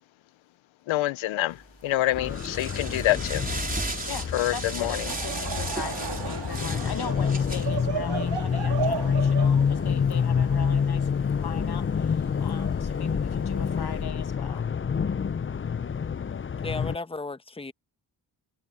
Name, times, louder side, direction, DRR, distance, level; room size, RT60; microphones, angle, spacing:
voice 1, 0.9-3.5 4.3-5.1, left 15 dB, 80° left, 0.6 m, -26 dB
sound 1, 1.6-14.0, right 2 dB, 20° right, 3.8 m, -38 dB
sound 2, 2.1-17.0, left 6 dB, 25° left, 0.6 m, -27 dB
voice 2, 4.5-14.7, left 7 dB, 55° left, 1.6 m, -39 dB
Laughter / Crowd, 4.8-11.3, right 6 dB, 70° right, 2.6 m, -35 dB
voice 3, 16.6-17.7, left 3 dB, 10° left, 1.0 m, -34 dB
cardioid pair, 60°, 46 cm